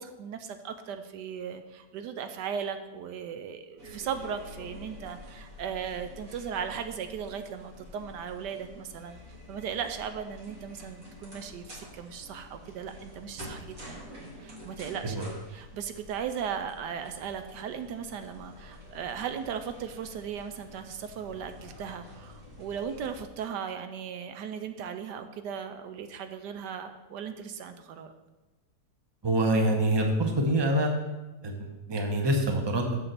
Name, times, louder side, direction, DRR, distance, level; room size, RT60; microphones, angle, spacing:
voice 1, 0.0-9.2 9.5-28.1, right 7 dB, 75° right, 8 dB, 1.2 m, -37 dB
sound 1, 3.8-23.2, left 1 dB, 50° right, 2.8 m, -48 dB
voice 2, 29.2-30.9 31.4-32.9, right 1 dB, 20° right, 3 dB, 0.9 m, -26 dB
7.0 x 6.9 x 6.7 m, 1.1 s
omnidirectional pair, 1.9 m